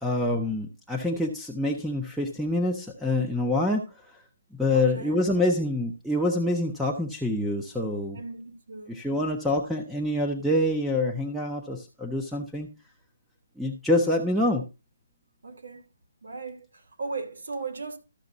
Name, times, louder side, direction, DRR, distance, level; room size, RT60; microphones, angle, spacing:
voice 1, 0.0-3.8 4.6-8.2 8.9-12.7 13.6-14.6, left 1 dB, ahead, 0.5 m, -26 dB
voice 2, 4.7-5.2 8.1-9.0 15.4-15.9 16.2-18.0, right 4 dB, 80° right, 2.9 m, -37 dB
13.5 x 6.2 x 3.9 m
hypercardioid pair, 175°, 0 cm